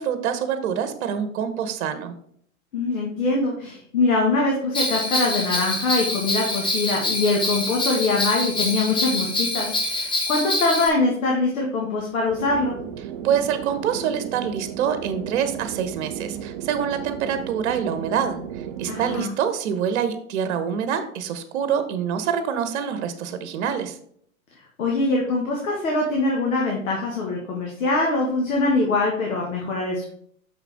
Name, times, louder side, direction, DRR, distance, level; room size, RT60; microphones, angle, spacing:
voice 1, 0.0-2.1 13.2-24.0, right 8 dB, 50° right, 10 dB, 1.0 m, -26 dB
voice 2, 2.7-12.8 18.8-19.3 24.8-30.0, left 3 dB, 65° left, -1 dB, 1.8 m, -23 dB
Bell, 4.7-10.9, left 2 dB, 10° left, 1.0 m, -25 dB
sound 1, 12.3-19.2, right 9 dB, 30° right, 0.4 m, -35 dB
6.2 x 5.9 x 3.5 m, 0.64 s
figure-of-eight pair, 105°, 43 cm